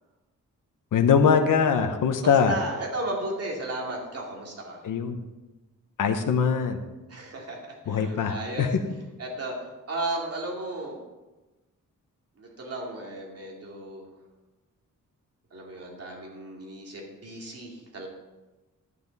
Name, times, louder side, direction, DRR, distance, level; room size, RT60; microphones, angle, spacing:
voice 1, 0.9-2.5 4.8-5.2 6.0-6.8 7.9-8.8, left 6 dB, 80° left, 6 dB, 1.0 m, -22 dB
voice 2, 2.5-4.8 7.1-8.7 9.2-11.0 12.4-14.1 15.5-18.1, right 1 dB, 50° right, -1 dB, 2.6 m, -34 dB
11.0 x 9.7 x 4.1 m, 1.1 s
wide cardioid pair, 170°, 32 cm